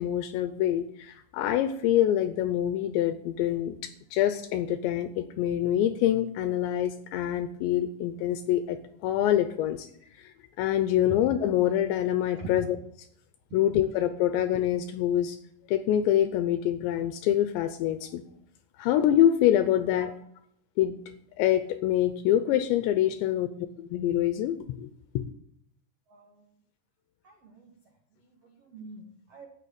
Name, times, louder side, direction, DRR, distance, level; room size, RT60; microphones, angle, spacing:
voice 1, 0.0-9.9 10.2-12.7 13.5-15.4 15.7-18.2 18.8-20.1 20.8-21.0 21.4-23.5 23.8-24.9 25.2-25.3, left 11 dB, 80° left, 10 dB, 2.7 m, -25 dB
voice 2, 26.1-26.6 27.2-27.7 28.1-29.5, right 2 dB, 75° right, 1 dB, 1.4 m, -44 dB
14.0 x 6.4 x 8.5 m, 0.71 s
omnidirectional pair, 5.7 m